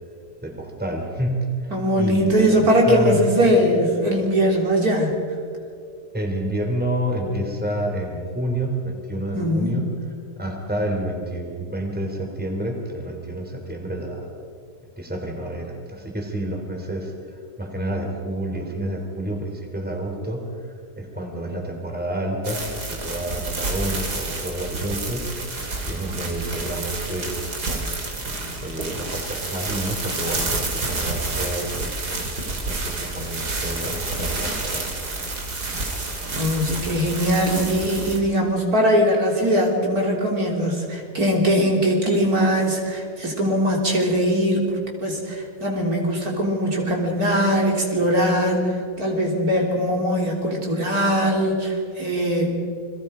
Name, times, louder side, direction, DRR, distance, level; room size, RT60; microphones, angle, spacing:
voice 1, 0.4-1.7 2.0-3.6 6.1-9.9 10.4-14.3 15.0-17.1 17.6-20.5 21.0-25.3 25.8-27.4 27.7-27.9 28.6-31.9 32.5-34.9, right 1 dB, 5° right, 1 dB, 3.4 m, -29 dB
voice 2, 1.7-5.1 9.3-9.7 36.3-44.7 45.0-52.5, equal, 70° right, -1 dB, 4.0 m, -21 dB
sound 1, 22.4-38.2, right 3 dB, 85° right, 3.6 m, -29 dB
29.5 x 23.0 x 5.1 m, 2.4 s
omnidirectional pair, 1.7 m